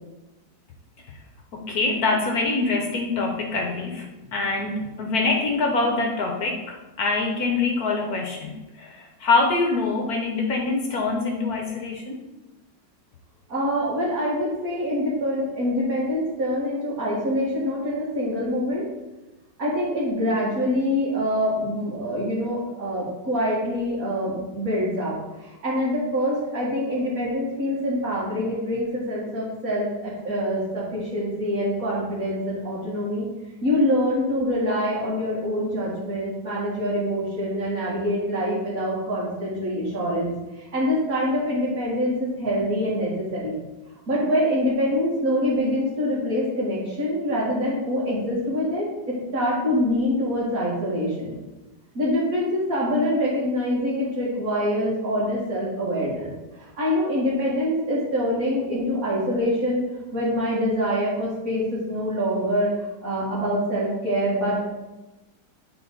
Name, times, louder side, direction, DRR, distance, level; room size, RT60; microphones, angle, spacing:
voice 1, 1.5-12.2, left 3 dB, 65° left, 2 dB, 1.3 m, -25 dB
voice 2, 13.5-18.9 19.6-25.1 25.4-33.3 33.6-40.3 40.7-43.6 44.1-51.3 51.9-56.3 56.8-59.8 60.1-62.7 63.0-64.6, equal, 50° right, -10 dB, 2.5 m, -25 dB
9.0 x 4.5 x 4.0 m, 1.1 s
omnidirectional pair, 1.9 m